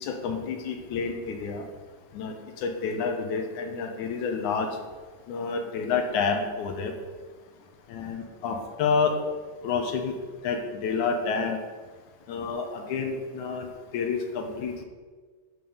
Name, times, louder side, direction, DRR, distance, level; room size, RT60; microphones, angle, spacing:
voice 1, 0.0-1.7 2.1-4.8 5.3-6.9 7.9-9.1 9.6-10.1 10.4-11.6 12.3-13.7 13.9-14.8, left 5 dB, 70° left, 4 dB, 2.2 m, -29 dB
13.0 x 5.2 x 5.5 m, 1.5 s
omnidirectional pair, 3.9 m